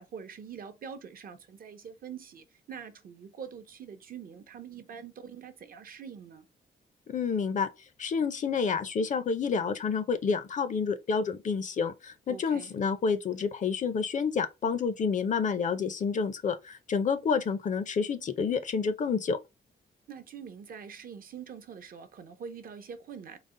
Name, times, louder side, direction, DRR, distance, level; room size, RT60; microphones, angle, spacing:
voice 1, 0.0-6.5 12.3-12.7 20.1-23.4, right 7 dB, 55° right, 0.6 m, -44 dB
voice 2, 7.1-7.7 8.0-19.4, left 5 dB, 45° left, 0.5 m, -29 dB
4.0 x 2.0 x 3.7 m
wide cardioid pair, 160°, 18 cm